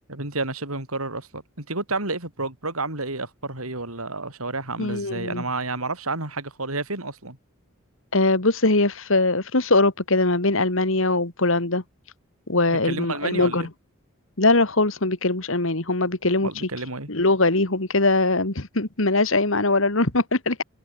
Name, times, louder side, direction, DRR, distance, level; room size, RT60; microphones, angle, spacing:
voice 1, 0.1-7.4 12.7-13.7 16.4-17.1, right 3 dB, 90° right, 7.2 m, -30 dB
voice 2, 4.8-5.4 8.1-11.8 12.5-13.7 14.4-16.5 17.1-20.6, left 2 dB, 65° left, 2.4 m, -21 dB
head